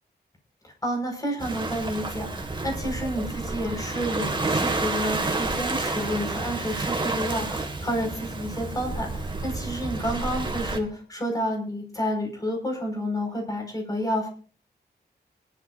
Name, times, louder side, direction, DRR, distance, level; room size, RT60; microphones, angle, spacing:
voice 1, 0.6-14.3, equal, 20° left, 2 dB, 5.6 m, -30 dB
Waves surf, 1.4-10.8, right 2 dB, 25° right, 2.0 m, -30 dB
25.5 x 12.0 x 2.7 m, 0.39 s
wide cardioid pair, 165°, 18 cm